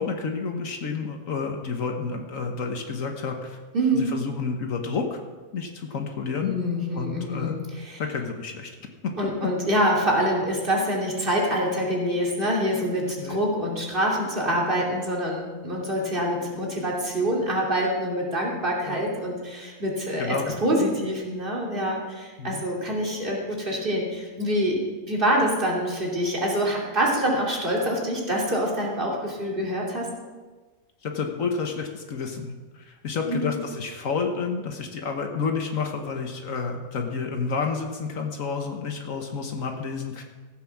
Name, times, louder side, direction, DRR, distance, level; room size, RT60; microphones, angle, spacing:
voice 1, 0.0-3.6 3.9-5.2 5.5-6.5 6.9-7.6 8.0-8.7 9.0-9.1 13.2-13.4 18.8-19.0 20.2-20.6 22.4-22.6 31.0-40.2, left 5 dB, 75° left, 3 dB, 1.5 m, -30 dB
voice 2, 3.7-4.1 6.4-8.0 9.2-24.8 25.1-30.1 33.2-33.5, equal, 40° right, -3 dB, 3.1 m, -25 dB
15.0 x 8.2 x 5.9 m, 1.3 s
omnidirectional pair, 1.4 m